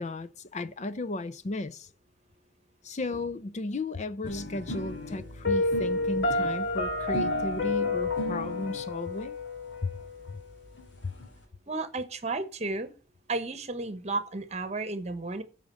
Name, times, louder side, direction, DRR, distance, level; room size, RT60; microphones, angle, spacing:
voice 1, 0.0-1.9 2.8-9.4 9.8-9.9 10.3-10.4 11.0-11.1, left 2 dB, 40° left, 0.5 m, -34 dB
sound 1, 4.2-8.8 9.7-9.8 10.0-10.1 10.4-10.5 10.6-11.3, equal, 80° left, 2.7 m, -39 dB
Piano, 5.4-10.4, left 2 dB, 65° left, 2.0 m, -29 dB
voice 2, 11.7-12.9 13.3-15.4, right 3 dB, 35° right, 1.1 m, -33 dB
8.6 x 5.1 x 7.6 m
head